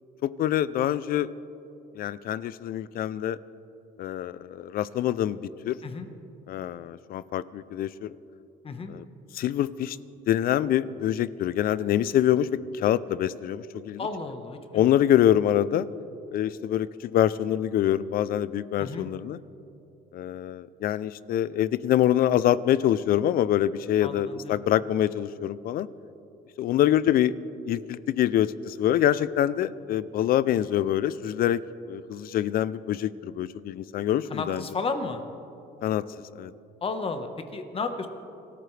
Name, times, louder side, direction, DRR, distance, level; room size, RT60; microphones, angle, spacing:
voice 1, 0.2-1.3 2.0-3.4 4.0-5.4 5.6-5.8 6.5-8.1 8.9-9.0 9.3-10.0 10.3-14.0 14.7-15.9 16.3-19.4 20.1-25.9 26.6-27.3 27.7-31.6 31.9-34.6 35.8-36.0 36.4-36.5, left 11 dB, 60° left, 18 dB, 0.5 m, -25 dB
voice 2, 14.0-14.9 18.8-19.1 24.0-24.6 34.3-35.2 36.8-38.1, left 4 dB, 35° left, 7 dB, 1.3 m, -33 dB
25.5 x 14.0 x 3.3 m, 2.9 s
cardioid pair, 110°, 17 cm